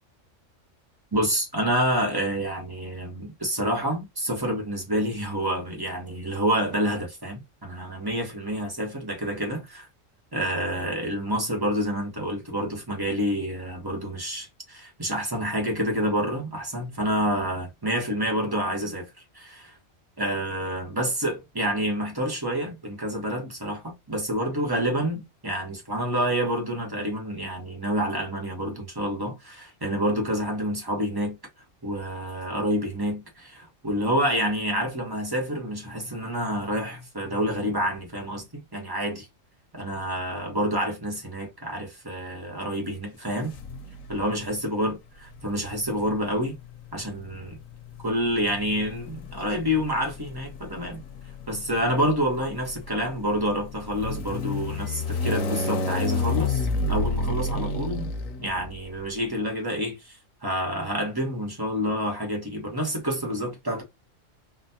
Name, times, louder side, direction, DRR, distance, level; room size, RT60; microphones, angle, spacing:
voice 1, 1.1-9.9 10.3-19.8 20.2-31.4 31.8-39.3 39.7-43.5 44.1-45.0 45.4-46.6 46.9-47.6 48.0-51.0 51.5-58.1 58.4-63.8, equal, 20° right, 1.2 m, -28 dB
sound 1, 43.5-44.2 45.3-59.0, left 3 dB, 90° left, 1.2 m, -31 dB
4.0 x 2.4 x 2.8 m
omnidirectional pair, 1.3 m